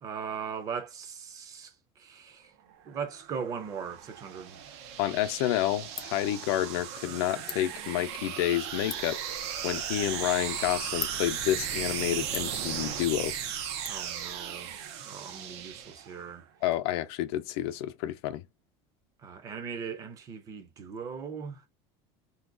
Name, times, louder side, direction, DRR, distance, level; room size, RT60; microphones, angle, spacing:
voice 1, 0.0-2.5 2.9-4.6 13.9-14.7 15.0-16.5 19.2-21.6, right 6 dB, 25° right, 0.5 m, -39 dB
sound 1, 2.9-16.3, right 8 dB, 85° right, 0.7 m, -36 dB
Ratchet pawl, 4.8-13.9, left 9 dB, 25° left, 0.4 m, -47 dB
voice 2, 5.0-9.2 9.6-13.3 16.6-18.4, left 13 dB, 80° left, 0.5 m, -29 dB
2.8 x 2.2 x 3.7 m
cardioid pair, 180°, 14 cm